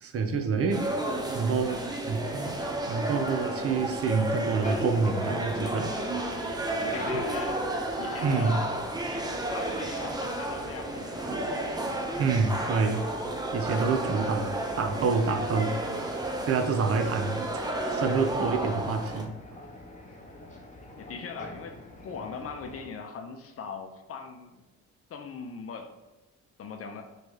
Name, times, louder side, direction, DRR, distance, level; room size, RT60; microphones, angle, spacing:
voice 1, 0.1-0.9 1.3-1.8 2.1-2.5 2.9-5.9 7.1-7.2 8.2-8.6 12.2-13.1 13.5-15.8 16.4-17.6 17.9-19.3, right 5 dB, 50° right, 6 dB, 0.6 m, -27 dB
sound 1, 0.7-19.3, right 1 dB, 15° right, 0.6 m, -32 dB
Spire Ambience Industrial, 4.6-22.8, left 1 dB, 25° left, 1.0 m, -46 dB
voice 2, 6.8-7.7 8.0-8.7 9.5-11.3 21.0-24.6 25.1-25.9 26.6-27.1, left 5 dB, 50° left, 5 dB, 0.6 m, -40 dB
4.4 x 3.2 x 2.8 m, 1.1 s
cardioid pair, 90°, 30 cm